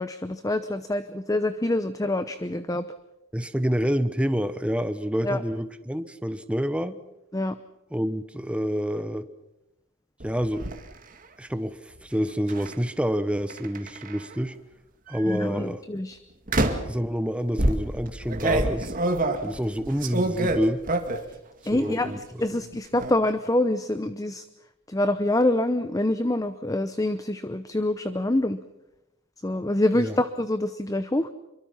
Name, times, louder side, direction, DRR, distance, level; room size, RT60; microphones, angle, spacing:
voice 1, 0.0-2.8 5.2-5.4 7.3-7.5 15.2-16.2 21.7-22.1 22.4-24.4 24.9-28.6 29.4-31.3, left 1 dB, 15° left, 11 dB, 0.8 m, -26 dB
voice 2, 3.3-7.0 7.9-9.3 10.2-10.7 11.4-14.6 15.1-15.8 16.9-18.9 19.4-20.8 21.7-22.2 30.0-30.2, equal, 5° right, 11 dB, 1.0 m, -28 dB
sound 1, 10.2-10.8 12.5-12.7 13.5-14.3 15.1-15.4 16.5-17.0 17.6-21.3 21.7-22.2 22.5-23.1, right 2 dB, 40° right, 2.2 m, -27 dB
26.5 x 23.5 x 5.8 m, 0.95 s
head